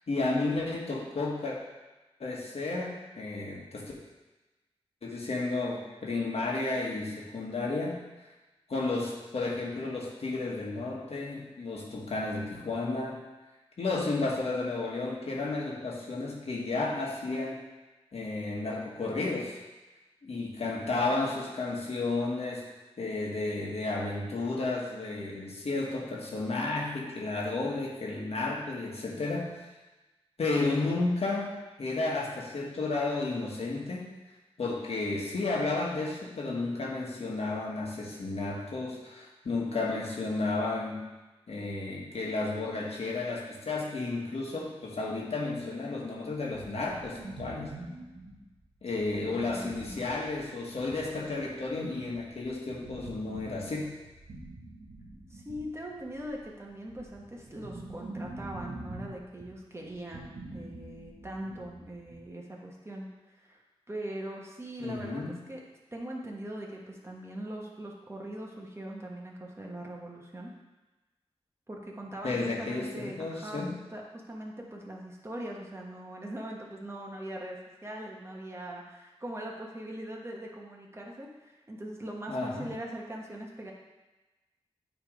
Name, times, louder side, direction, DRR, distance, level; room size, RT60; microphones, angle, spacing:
voice 1, 0.1-1.6 2.2-3.9 5.0-8.0 8.7-13.2 13.8-17.6 18.1-19.6 20.2-22.7 23.0-29.6 30.4-31.5 31.8-34.1 34.6-41.0 41.5-47.7 48.8-54.0 64.8-65.4 72.2-73.7 82.3-82.7, left 3 dB, 70° left, -2 dB, 1.5 m, -32 dB
sound 1, 46.5-62.2, right 2 dB, 70° right, 1.8 m, -45 dB
voice 2, 49.1-50.0 55.3-63.1 63.4-63.6 63.9-65.6 65.9-70.5 71.7-83.7, right 1 dB, 25° right, -2 dB, 1.3 m, -41 dB
9.1 x 3.4 x 5.1 m, 1.1 s
wide cardioid pair, 85°, 11 cm